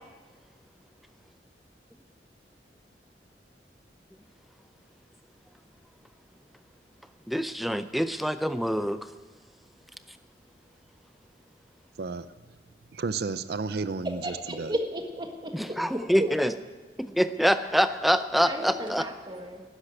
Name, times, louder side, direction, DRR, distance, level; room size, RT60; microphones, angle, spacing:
voice 1, 7.3-9.0 15.5-16.5 17.0-19.1, equal, ahead, 0.6 m, -25 dB
voice 2, 12.9-14.7, right 4 dB, 60° right, 0.5 m, -32 dB
voice 3, 14.2-15.8 16.2-16.3 18.4-19.6, equal, 25° right, 1.5 m, -34 dB
12.5 x 10.0 x 9.8 m
head